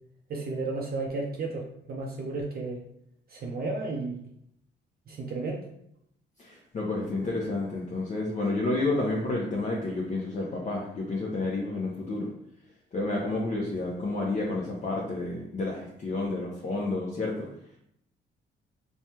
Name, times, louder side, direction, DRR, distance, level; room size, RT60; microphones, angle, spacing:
voice 1, 0.3-2.8 3.3-4.3 5.1-5.7, right 3 dB, 50° right, -1 dB, 0.5 m, -33 dB
voice 2, 6.4-12.3 12.9-17.5, left 2 dB, 40° left, -3 dB, 0.6 m, -30 dB
3.2 x 2.2 x 2.8 m, 0.74 s
cardioid pair, 90°, 20 cm